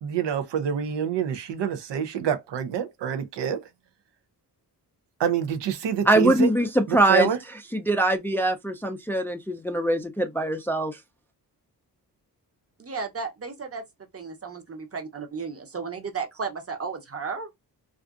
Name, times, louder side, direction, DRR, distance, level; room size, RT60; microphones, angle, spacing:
voice 1, 0.0-3.6 5.2-6.5 6.9-7.4, right 9 dB, 80° right, 0.6 m, -26 dB
voice 2, 6.1-7.3 7.7-11.0, right 1 dB, 5° left, 0.4 m, -22 dB
voice 3, 12.8-13.8 14.1-17.6, right 5 dB, 35° right, 0.8 m, -34 dB
2.5 x 2.4 x 2.3 m
cardioid pair, 55°, 42 cm